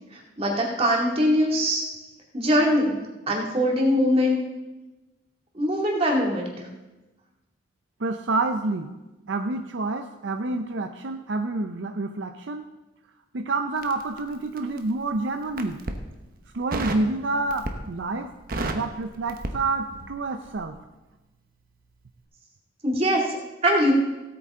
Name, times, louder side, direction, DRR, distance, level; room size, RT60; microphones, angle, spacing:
voice 1, 0.1-1.8 2.3-3.0 3.3-4.4 5.5-6.5 22.8-23.2 23.6-23.9, equal, 30° right, -1 dB, 2.3 m, -22 dB
voice 2, 8.0-8.9 9.3-12.7 13.3-15.8 16.5-18.3 18.7-20.8, right 3 dB, 70° right, 6 dB, 0.6 m, -28 dB
Crackle, 13.8-14.9 15.4-16.0 16.7-17.1 17.5-18.0 18.3-20.2 20.4-20.7, right 2 dB, 50° right, 1.0 m, -32 dB
17.0 x 8.6 x 3.7 m, 1.1 s
head